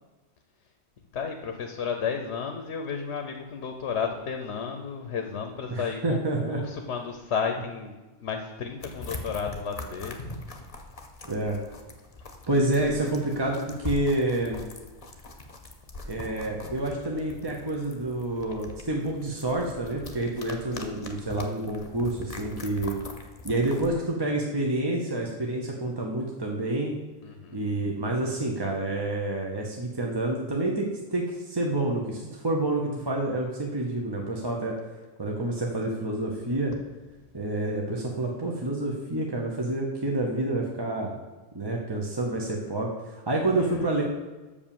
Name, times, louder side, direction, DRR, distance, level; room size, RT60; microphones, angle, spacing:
voice 1, 1.1-10.2 27.2-27.6 43.5-43.9, left 6 dB, 85° left, 5 dB, 1.1 m, -33 dB
voice 2, 5.7-6.6 11.2-11.6 12.5-14.6 16.1-23.0 23.4-27.0 27.5-34.7 35.2-36.7 37.3-41.2 41.5-44.0, right 2 dB, 25° right, -1 dB, 0.8 m, -28 dB
sound 1, 8.8-23.9, left 2 dB, 35° left, 0.9 m, -42 dB
6.8 x 5.2 x 7.1 m, 1.2 s
omnidirectional pair, 1.1 m